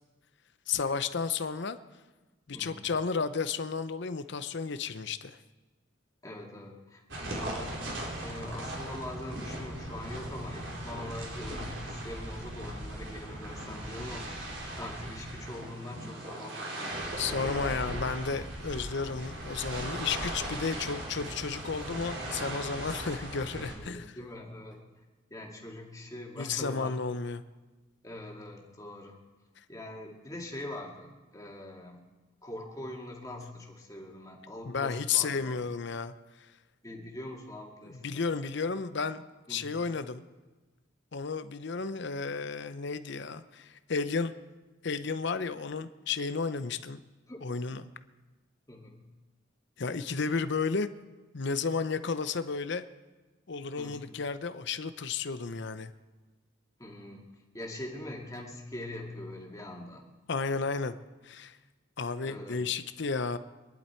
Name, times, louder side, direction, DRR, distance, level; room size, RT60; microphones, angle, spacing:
voice 1, 0.7-1.8 2.5-5.4 17.2-24.2 26.4-27.4 34.7-36.1 37.9-39.2 39.5-40.2 41.1-44.3 44.8-47.0 47.4-47.9 49.8-50.9 51.3-52.8 53.5-55.9 60.3-61.0 61.2-61.6 62.0-63.4, left 5 dB, 60° left, 12 dB, 0.7 m, -32 dB
voice 2, 2.5-2.9 6.2-7.9 8.2-14.4 14.8-18.2 20.4-20.7 23.6-24.8 25.3-27.0 28.0-29.1 29.7-32.1 32.4-35.6 36.8-38.2 39.5-39.8 47.3-47.4 48.7-49.0 53.8-54.1 56.8-60.1 62.2-62.6, left 1 dB, 15° left, 0 dB, 2.3 m, -43 dB
sound 1, 7.1-23.8, right 1 dB, 65° right, 3.9 m, -38 dB
24.5 x 11.0 x 4.5 m, 1.2 s
head